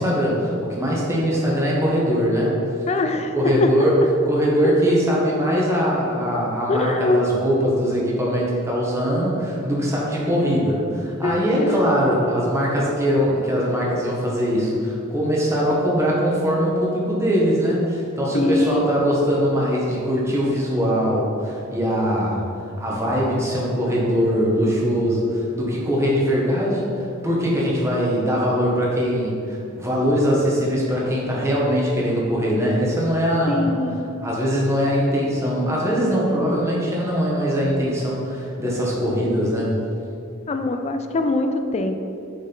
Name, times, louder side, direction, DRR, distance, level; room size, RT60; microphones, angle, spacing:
voice 1, 0.0-2.6 3.3-4.0 4.3-22.4 22.8-33.7 34.2-39.7, equal, 15° right, -5 dB, 1.2 m, -21 dB
voice 2, 2.9-3.3 3.6-3.7 4.6-4.7 6.7-7.3 11.2-12.0 18.3-18.9 33.5-34.1 40.5-42.0, left 2 dB, 30° left, 7 dB, 0.3 m, -23 dB
6.1 x 4.3 x 3.9 m, 2.6 s
head